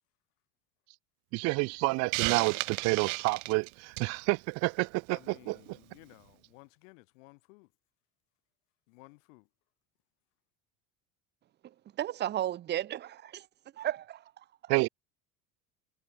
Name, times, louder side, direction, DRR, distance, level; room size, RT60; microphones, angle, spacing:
voice 1, 1.3-5.2 5.5-5.6 14.7-14.9, right 26 dB, 45° right, 0.4 m, -29 dB
Hiss, 2.1-4.2, right 40 dB or more, 70° right, 0.8 m, -33 dB
voice 2, 5.1-7.7 8.9-9.5, left 28 dB, 85° left, 5.5 m, -56 dB
voice 3, 11.6-13.5 13.8-14.7, right 12 dB, 30° right, 1.0 m, -35 dB
cardioid pair, 160°, 37 cm